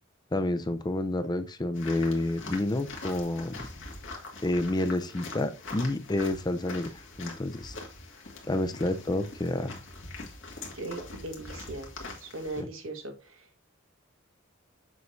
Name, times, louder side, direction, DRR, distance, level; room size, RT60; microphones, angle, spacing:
voice 1, 0.3-3.7 4.4-6.9 7.2-7.7 8.5-9.8 12.6-12.7, left 1 dB, 20° left, 10 dB, 0.6 m, -29 dB
sound 1, 1.7-12.6, left 3 dB, 65° left, 1.9 m, -43 dB
voice 2, 10.7-11.9 12.2-13.6, right 2 dB, 80° right, 5 dB, 1.6 m, -39 dB
6.9 x 6.4 x 2.6 m, 0.30 s
head